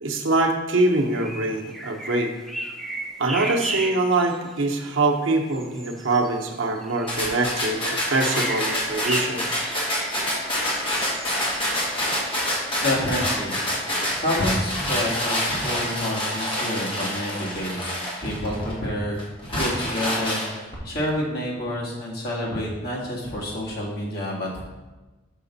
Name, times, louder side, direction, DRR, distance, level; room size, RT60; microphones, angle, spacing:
voice 1, 0.0-2.3 3.2-9.6, right 2 dB, 80° right, 2 dB, 0.8 m, -24 dB
sound 1, 1.0-12.7, right 1 dB, ahead, 0.5 m, -36 dB
sound 2, 7.1-18.7 19.2-20.8, left 1 dB, 25° left, 1.4 m, -27 dB
voice 2, 12.8-13.6 14.1-17.9 18.2-24.6, left 1 dB, 50° left, -4 dB, 1.6 m, -28 dB
6.4 x 5.1 x 4.0 m, 1.2 s
head